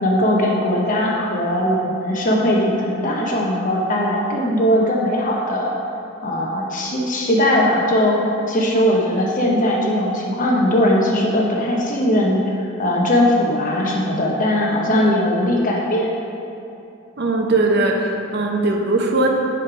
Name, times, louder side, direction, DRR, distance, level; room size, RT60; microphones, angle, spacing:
voice 1, 0.0-5.7 6.2-8.2 8.5-12.4 12.8-16.1, left 1 dB, 40° left, -2 dB, 1.0 m, -19 dB
voice 2, 17.2-19.3, right 2 dB, 60° right, 1 dB, 0.7 m, -19 dB
9.6 x 3.3 x 4.8 m, 2.6 s
head